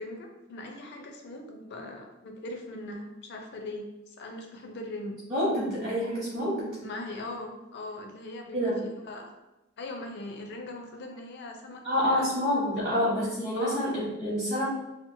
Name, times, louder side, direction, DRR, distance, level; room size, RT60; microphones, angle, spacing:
voice 1, 0.0-5.2 6.8-9.3 9.8-12.3 13.5-13.8, left 2 dB, 55° left, 3 dB, 0.4 m, -40 dB
voice 2, 5.3-6.8 8.5-8.8 11.8-14.6, equal, 35° right, -9 dB, 0.8 m, -27 dB
2.8 x 2.1 x 2.6 m, 0.97 s
head